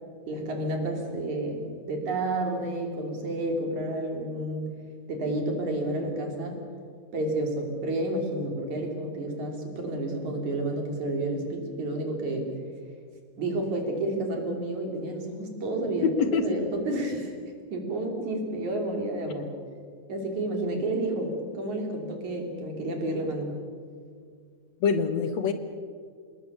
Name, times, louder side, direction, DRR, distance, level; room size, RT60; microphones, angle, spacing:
voice 1, 0.3-4.7 5.1-6.6 7.1-12.5 13.4-16.1 16.4-17.3 17.7-19.5 20.1-23.6, right 1 dB, 65° right, 2 dB, 4.6 m, -30 dB
voice 2, 16.0-16.6 24.8-25.5, left 6 dB, 65° left, 9 dB, 2.1 m, -24 dB
26.5 x 20.0 x 6.8 m, 2.1 s
omnidirectional pair, 3.6 m